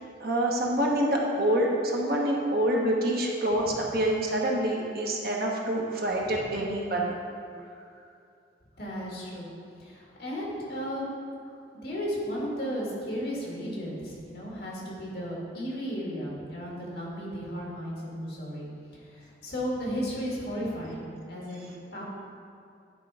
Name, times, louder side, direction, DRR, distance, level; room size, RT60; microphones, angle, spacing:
voice 1, 0.2-7.1, right 1 dB, 55° right, -1 dB, 1.1 m, -26 dB
voice 2, 8.8-9.5 9.8-11.1 11.8-18.7 19.1-22.0, equal, 60° left, -4 dB, 1.9 m, -34 dB
9.9 x 3.8 x 4.8 m, 2.4 s
head